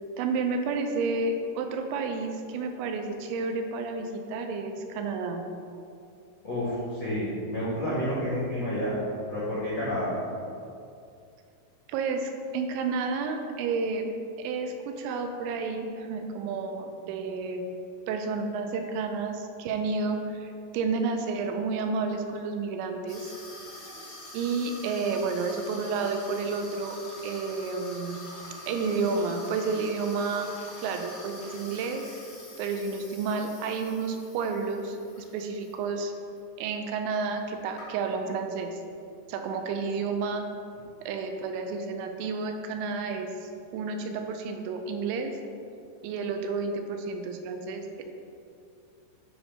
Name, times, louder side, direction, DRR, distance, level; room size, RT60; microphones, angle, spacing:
voice 1, 0.2-5.5 11.9-14.1 14.4-17.6 18.1-23.3 24.3-27.0 27.2-28.2 28.7-30.5 30.8-32.1 32.6-36.1 36.6-38.8 39.3-40.4 41.0-45.3 46.0-48.0, right 4 dB, 85° right, 5 dB, 2.8 m, -31 dB
voice 2, 6.4-9.0 9.3-10.1, equal, 75° left, -10 dB, 1.0 m, -30 dB
Water tap faucet / Sink (filling or washing), 23.1-35.8 36.1-36.4 37.1-37.2 37.4-38.3, left 1 dB, 60° left, 1.3 m, -45 dB
9.9 x 3.4 x 5.4 m, 2.5 s
omnidirectional pair, 5.3 m